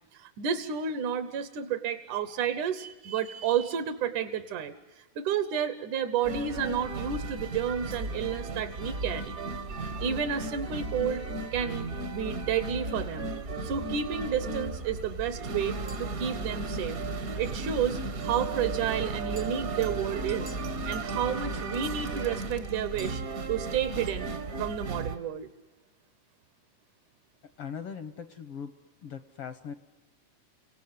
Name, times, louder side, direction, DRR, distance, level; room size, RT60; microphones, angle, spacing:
voice 1, 0.1-9.4 10.0-11.3 11.5-13.3 13.6-17.0 17.4-20.6 20.9-23.2 23.5-24.3 24.6-25.5, right 8 dB, 70° right, 11 dB, 2.5 m, -31 dB
sound 1, 6.2-25.2, right 3 dB, 50° right, 1.0 m, -35 dB
voice 2, 27.6-28.7 29.0-29.7, left 7 dB, 70° left, 11 dB, 1.4 m, -40 dB
29.5 x 17.5 x 9.6 m, 1.2 s
omnidirectional pair, 3.8 m